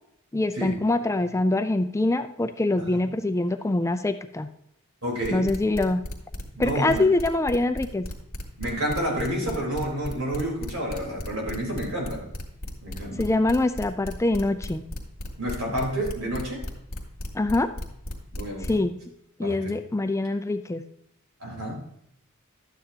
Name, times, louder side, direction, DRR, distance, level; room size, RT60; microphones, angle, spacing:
voice 1, 0.3-4.5 5.3-6.0 6.6-8.1 13.2-14.8 17.3-17.7 18.7-19.0 19.4-20.8, left 2 dB, 15° left, 9 dB, 0.4 m, -24 dB
voice 2, 5.0-5.5 6.5-7.0 8.6-12.3 12.8-13.2 15.4-16.6 18.3-18.8 19.4-19.7 21.4-21.8, equal, 90° right, -1 dB, 3.9 m, -29 dB
sound 1, 5.2-18.8, left 1 dB, 45° left, 2.0 m, -35 dB
12.5 x 9.1 x 2.8 m, 0.76 s
head